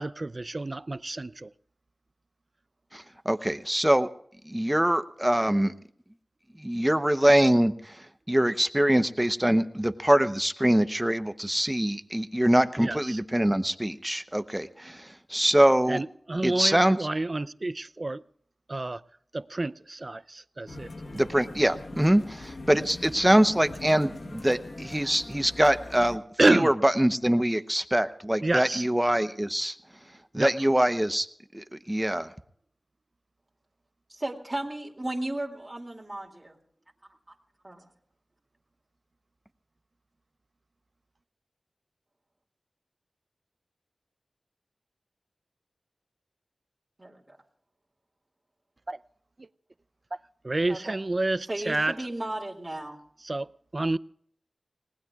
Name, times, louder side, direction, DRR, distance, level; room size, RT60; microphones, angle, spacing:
voice 1, 0.0-1.5 12.8-13.2 15.9-18.2 18.7-19.0 19.3-20.9 26.4-26.7 28.4-28.9 30.3-30.5 48.9-49.0 49.4-49.5 50.1-50.2 50.4-52.1 53.2-54.0, right 2 dB, 45° right, 0.5 m, -28 dB
voice 2, 2.9-4.1 4.5-5.7 6.6-16.0 16.4-17.0 21.1-26.2 26.5-29.8 30.3-31.3 31.5-32.3, right 1 dB, 10° right, 0.8 m, -24 dB
sound 1, 20.7-26.2, left 2 dB, 70° left, 1.2 m, -42 dB
voice 3, 34.1-36.6 37.6-37.9 47.0-47.4 50.7-51.0 51.5-53.0, right 1 dB, 25° right, 2.6 m, -35 dB
29.5 x 19.0 x 2.4 m
wide cardioid pair, 65°, 0 cm